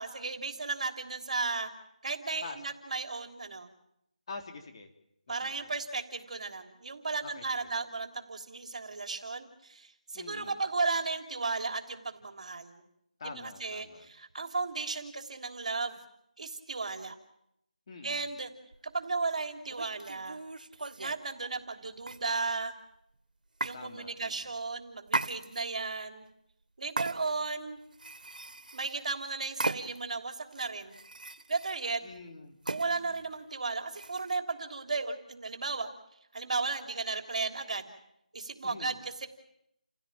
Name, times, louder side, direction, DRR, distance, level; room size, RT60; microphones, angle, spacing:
voice 1, 0.0-1.7 2.0-3.7 5.3-12.8 13.2-16.0 16.4-17.2 18.0-18.5 18.8-20.4 21.0-22.7 23.6-26.3 26.8-27.8 28.7-31.0 31.5-32.0 32.7-35.9 36.3-37.9 38.3-38.9 39.2-39.3, right 4 dB, 55° right, 7 dB, 3.3 m, -35 dB
voice 2, 4.3-4.9 5.3-5.7 7.2-7.7 10.1-10.6 13.2-14.1 17.9-18.3 23.7-24.6 32.0-32.6 32.9-33.3 38.6-39.0, left 4 dB, 40° left, 4 dB, 3.7 m, -46 dB
sound 1, 18.7-18.9 19.6-21.2 22.0-22.6 23.6-23.8 25.1-25.8 27.0-27.5 27.9-29.0 29.6-30.1 30.5-31.8 32.6-32.9 33.9-34.4, right 2 dB, 80° right, 1.8 m, -37 dB
29.5 x 16.5 x 8.9 m, 0.77 s
figure-of-eight pair, 165°, 4 cm